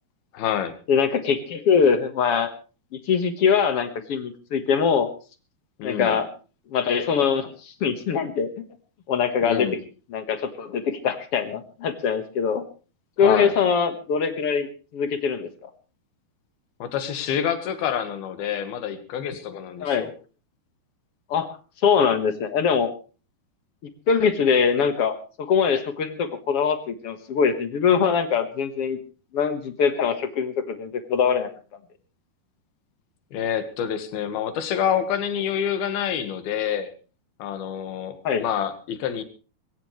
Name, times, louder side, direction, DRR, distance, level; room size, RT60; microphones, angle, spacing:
voice 1, 0.3-0.7 5.8-6.2 9.4-9.8 13.2-13.5 16.8-20.1 33.3-36.9 37.4-39.2, left 9 dB, 75° left, 11 dB, 3.4 m, -27 dB
voice 2, 0.9-2.5 3.1-5.1 5.8-6.3 6.7-8.5 9.1-9.7 10.1-12.6 13.2-14.7 14.9-15.7 19.8-20.1 21.3-21.6 21.8-22.9 24.1-29.0 29.3-31.5 38.2-38.4, left 6 dB, 55° left, 9 dB, 1.7 m, -22 dB
22.0 x 17.0 x 3.2 m, 0.34 s
omnidirectional pair, 4.4 m